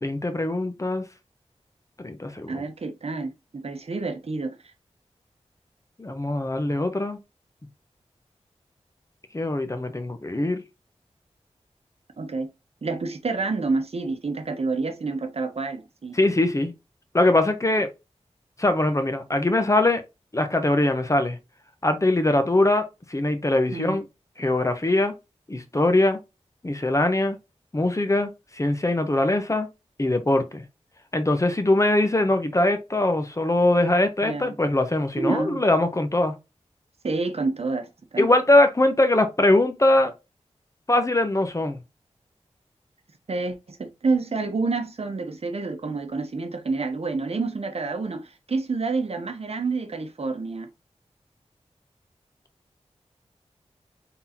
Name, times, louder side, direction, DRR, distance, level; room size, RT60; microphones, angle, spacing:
voice 1, 0.0-1.0 2.0-2.6 6.0-7.2 9.3-10.6 16.1-16.7 17.1-17.9 18.6-20.0 20.3-21.4 21.8-24.0 24.4-25.1 25.5-26.2 26.6-27.4 27.7-28.3 28.6-29.7 30.0-30.6 31.1-36.3 38.2-40.1 40.9-41.8, left 2 dB, 25° left, 0.8 m, -22 dB
voice 2, 2.5-4.6 12.2-12.5 12.8-16.2 23.7-24.0 34.2-34.5 35.2-35.6 37.0-38.3 43.3-50.7, right 3 dB, 60° right, 0.9 m, -28 dB
4.0 x 3.8 x 2.8 m
wide cardioid pair, 65°, 12 cm